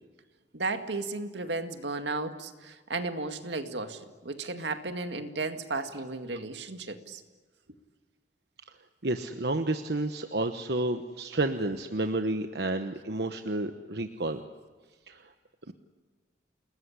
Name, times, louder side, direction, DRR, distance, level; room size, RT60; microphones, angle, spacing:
voice 1, 0.5-7.2, right 3 dB, 85° right, 7 dB, 2.1 m, -34 dB
voice 2, 9.0-14.4 15.1-15.3 15.7-15.8, right 2 dB, 65° right, 7 dB, 1.2 m, -30 dB
29.5 x 20.5 x 9.9 m, 1.4 s
head